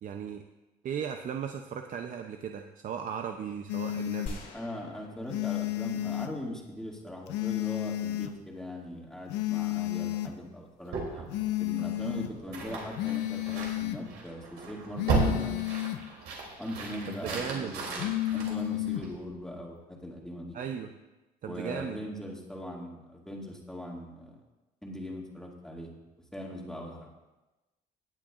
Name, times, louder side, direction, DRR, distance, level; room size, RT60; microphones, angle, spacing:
voice 1, 0.0-0.4 0.8-4.4 17.2-17.8 20.5-20.9 21.4-22.0, right 7 dB, 50° right, 5 dB, 0.6 m, -36 dB
mobile phone vibration, 3.7-4.3 5.3-6.3 7.3-8.3 9.3-10.3 11.3-12.3 13.0-14.0 15.0-16.0 18.0-19.0, left 15 dB, 85° left, 0.7 m, -31 dB
sound 1, 4.3-6.5, left 3 dB, 55° left, 2.4 m, -44 dB
voice 2, 4.5-11.3 11.6-15.9 16.6-20.6 21.5-24.4 24.8-25.9 26.3-27.1, equal, 5° left, -2 dB, 2.2 m, -40 dB
sound 2, 10.9-19.3, right 4 dB, 80° right, 3.0 m, -35 dB
17.5 x 8.8 x 2.5 m, 1.1 s
cardioid pair, 110°, 17 cm